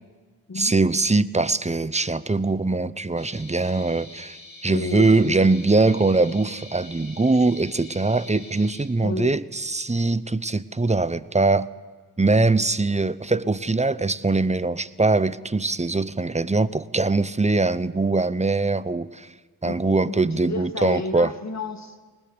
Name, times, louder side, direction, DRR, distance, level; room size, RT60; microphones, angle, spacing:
voice 1, 0.6-11.7 12.2-19.3 19.6-21.3, right 3 dB, 20° right, 16 dB, 0.8 m, -22 dB
sound 1, 3.2-8.8, left 3 dB, 70° left, 5.2 m, -45 dB
voice 2, 4.7-5.4 9.0-9.4 19.7-22.1, left 3 dB, 45° left, 7 dB, 2.0 m, -32 dB
21.0 x 19.5 x 8.0 m, 1.4 s
cardioid pair, 40°, 37 cm